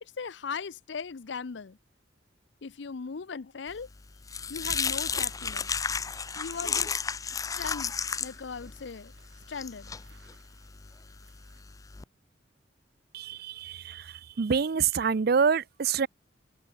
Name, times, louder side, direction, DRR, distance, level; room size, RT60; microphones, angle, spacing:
voice 1, 0.0-1.8 2.6-3.9 4.5-5.7 6.4-6.9 7.5-7.9 8.2-9.1 9.5-9.9, left 5 dB, 70° left, 0.6 m, -38 dB
sound 1, 3.8-12.0, left 6 dB, 20° left, 0.4 m, -33 dB
sound 2, 4.6-11.6, right 4 dB, 75° right, 7.0 m, -62 dB
voice 2, 13.1-16.1, right 6 dB, 55° right, 0.5 m, -27 dB
head